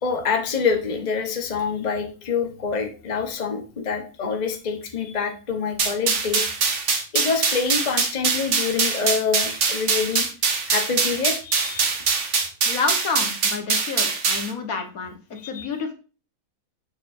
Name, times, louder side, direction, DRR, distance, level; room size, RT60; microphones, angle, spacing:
voice 1, 0.0-6.5 7.1-10.3 10.7-11.9 12.2-12.3 15.4-15.7, left 5 dB, 30° left, 4 dB, 1.1 m, -26 dB
sound 1, 5.8-14.5, right 5 dB, 55° right, 1.4 m, -23 dB
voice 2, 12.7-15.1 15.4-15.9, left 4 dB, 70° left, 5 dB, 1.8 m, -29 dB
7.2 x 6.8 x 2.6 m, 0.34 s
omnidirectional pair, 1.6 m